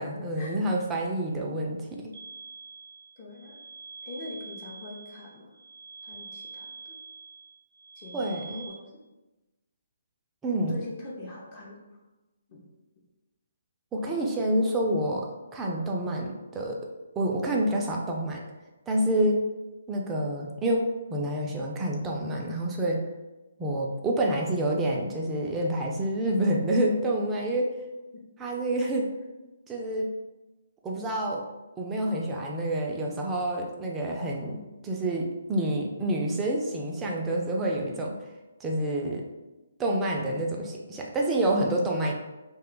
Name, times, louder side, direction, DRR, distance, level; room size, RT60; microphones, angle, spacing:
voice 1, 0.0-2.1 8.1-8.7 10.4-10.8 13.9-15.3 15.5-16.8 17.2-18.4 18.9-19.4 19.9-23.0 23.6-27.7 28.4-29.1 29.7-30.1 30.8-31.5 31.8-38.2 38.6-39.2 39.8-42.1, right 1 dB, 15° right, -1 dB, 0.4 m, -28 dB
sound 1, 2.1-8.7, right 4 dB, 75° right, 0.6 m, -45 dB
voice 2, 3.2-3.6 4.0-5.5 6.0-7.0 8.0-8.8 10.5-11.8 12.5-12.7 14.0-14.1, left 2 dB, 35° left, -2 dB, 0.6 m, -43 dB
2.4 x 2.2 x 3.7 m, 1.1 s
hypercardioid pair, 145°, 0 cm